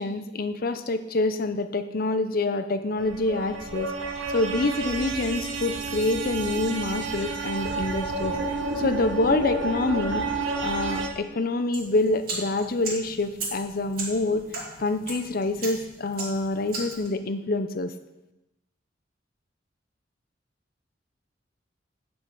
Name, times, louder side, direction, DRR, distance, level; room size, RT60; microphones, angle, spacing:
voice 1, 0.0-3.9 4.3-8.4 8.8-10.3 10.6-14.4 14.8-17.9, left 2 dB, 50° left, 10 dB, 0.7 m, -26 dB
sound 1, 3.0-11.1, right 3 dB, 85° right, 1.3 m, -30 dB
sound 2, 11.7-17.1, right 3 dB, 50° right, 2.9 m, -37 dB
9.8 x 5.4 x 6.2 m, 0.97 s
head